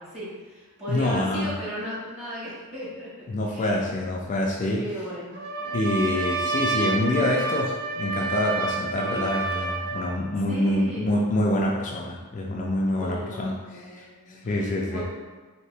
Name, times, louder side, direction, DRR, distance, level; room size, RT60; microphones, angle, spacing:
voice 1, 0.0-3.9 4.7-5.8 10.5-11.1 12.9-15.0, equal, 30° right, -9 dB, 1.3 m, -36 dB
voice 2, 0.9-1.5 3.3-4.8 5.7-13.6 13.9-14.1 14.4-15.0, left 1 dB, 35° left, -1 dB, 0.3 m, -26 dB
Trumpet, 5.3-10.2, right 3 dB, 50° right, 0.5 m, -29 dB
2.9 x 2.8 x 3.3 m, 1.3 s
head